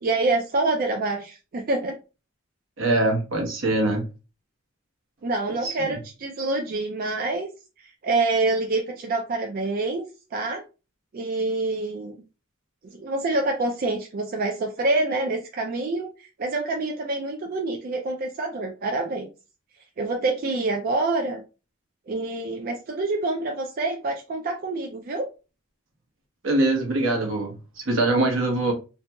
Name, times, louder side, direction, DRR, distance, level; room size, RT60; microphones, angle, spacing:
voice 1, 0.0-2.0 5.2-7.5 8.0-10.0 10.3-10.6 11.1-12.2 12.9-19.3 20.0-21.4 22.1-25.3, right 2 dB, 45° right, 0.4 m, -26 dB
voice 2, 2.8-4.0 5.6-6.0 26.4-28.7, right 2 dB, 75° right, 1.0 m, -23 dB
2.7 x 2.6 x 2.2 m
head